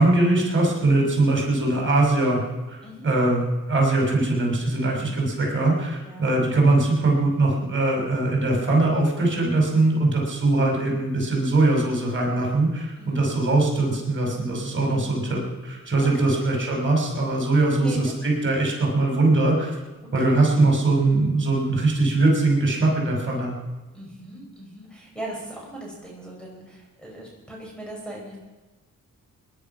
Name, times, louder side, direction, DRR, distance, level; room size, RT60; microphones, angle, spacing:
voice 1, 0.0-2.4 2.7-19.8 20.1-23.5, right 2 dB, 35° right, -1 dB, 6.2 m, -21 dB
voice 2, 4.8-5.2 6.0-6.3 13.0-13.2 14.7-15.2 16.0-16.4 17.7-18.1 20.1-20.5 23.9-28.4, right 1 dB, 5° left, -2 dB, 5.7 m, -39 dB
19.5 x 11.0 x 5.9 m, 1.2 s
cardioid pair, 70°, 34 cm